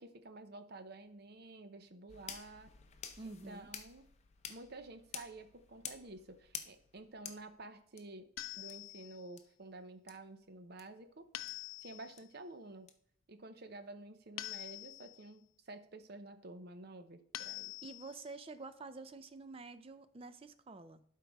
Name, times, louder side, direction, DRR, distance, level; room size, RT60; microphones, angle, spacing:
voice 1, 0.0-2.7 3.2-4.0 4.5-8.3 8.5-11.3 11.8-12.9 13.3-17.8, right 2 dB, 50° right, 9 dB, 0.8 m, -51 dB
sound 1, 2.1-8.0 8.7-8.8 9.4-9.5 10.1-10.2 10.8-10.9 11.5-11.6 12.2-12.3 12.9-13.0, left 7 dB, 35° left, 0.7 m, -50 dB
voice 2, 3.2-3.7 17.8-21.0, right 3 dB, 30° right, 12 dB, 0.4 m, -49 dB
sound 2, 8.4-9.3 11.3-12.2 14.4-15.3 17.3-18.3, left 15 dB, 75° left, 0.4 m, -46 dB
12.0 x 4.7 x 3.5 m, 0.65 s
head